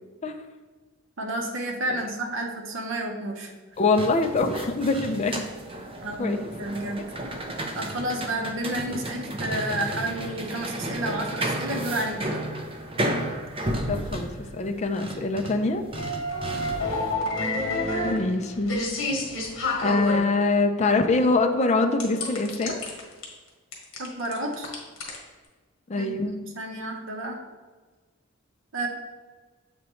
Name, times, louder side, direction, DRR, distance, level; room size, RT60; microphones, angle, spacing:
voice 1, 1.2-3.5 6.0-7.0 7.7-12.4 24.0-24.7 26.0-26.1 26.5-27.4 28.7-28.9, right 1 dB, 65° right, 1 dB, 0.9 m, -30 dB
voice 2, 3.8-5.4 6.2-6.5 8.9-9.0 13.9-15.8 18.0-18.8 19.8-22.8 25.9-26.4, left 3 dB, 30° left, 5 dB, 0.4 m, -24 dB
sound 1, 3.8-17.0, right 1 dB, 25° right, 0.5 m, -33 dB
sound 2, 16.0-20.2 22.0-23.2 23.7-25.2, left 2 dB, 70° left, 1.4 m, -28 dB
7.2 x 4.4 x 3.1 m, 1.4 s
head